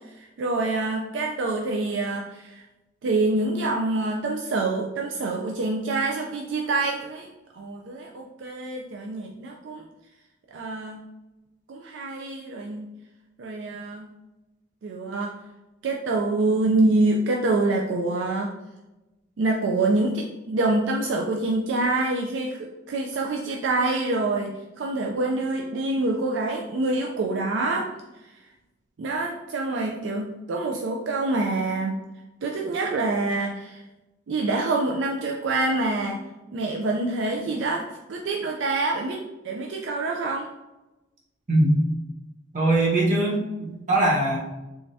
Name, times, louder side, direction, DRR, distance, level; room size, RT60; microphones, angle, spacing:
voice 1, 0.1-2.6 3.0-7.3 7.5-9.9 10.5-11.1 11.7-12.9 13.4-14.1 14.8-15.4 15.8-18.5 19.4-27.9 28.2-28.3 29.0-32.0 32.4-33.8 34.3-36.2 36.5-40.5, right 2 dB, 75° right, 1 dB, 0.4 m, -26 dB
voice 2, 41.5-41.8 42.5-44.4, right 1 dB, 45° right, -3 dB, 0.9 m, -21 dB
3.4 x 3.2 x 2.6 m, 1.0 s
head